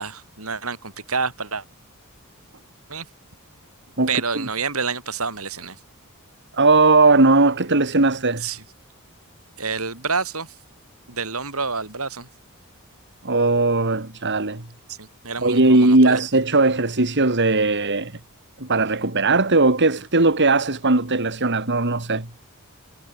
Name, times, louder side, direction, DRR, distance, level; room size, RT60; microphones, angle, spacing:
voice 1, 0.0-1.6 2.9-3.1 4.1-5.8 8.4-8.6 9.6-10.6 11.1-12.3 14.9-16.2, right 5 dB, 70° right, 7.7 m, -28 dB
voice 2, 6.5-8.4 13.2-14.6 15.4-18.2 18.6-22.3, right 3 dB, 55° right, 2.6 m, -18 dB
head